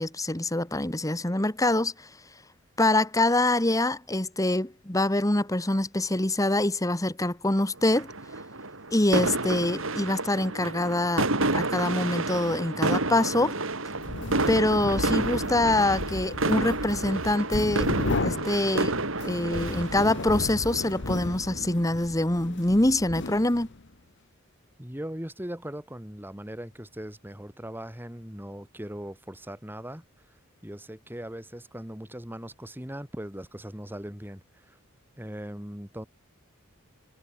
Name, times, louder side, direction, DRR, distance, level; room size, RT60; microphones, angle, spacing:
voice 1, 0.0-2.1 2.8-8.1 8.9-11.3 11.5-13.6 14.5-17.9 18.2-18.9 19.2-23.7, left 1 dB, 15° left, 1.5 m, -25 dB
sound 1, 7.9-21.6, right 2 dB, 65° right, 3.8 m, -30 dB
sound 2, 13.9-23.9, left 2 dB, 55° left, 1.3 m, -34 dB
voice 2, 24.8-30.1 30.6-34.8 35.2-36.1, equal, 10° right, 2.3 m, -39 dB
head